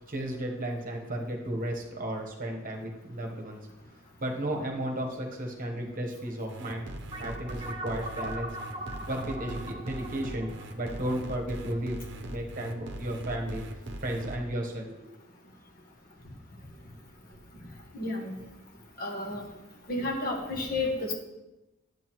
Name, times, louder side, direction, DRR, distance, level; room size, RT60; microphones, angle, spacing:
voice 1, 0.1-3.6 4.2-8.5 9.1-13.6 14.0-15.1, right 1 dB, 40° right, 1 dB, 1.1 m, -34 dB
sound 1, 6.5-14.4, right 1 dB, 55° right, 0.8 m, -40 dB
sound 2, 7.1-11.9, right 1 dB, 25° right, 0.8 m, -41 dB
voice 2, 17.9-18.4 19.0-19.5 19.9-21.2, left 2 dB, 45° left, 0 dB, 1.5 m, -31 dB
10.5 x 8.0 x 3.1 m, 0.99 s
head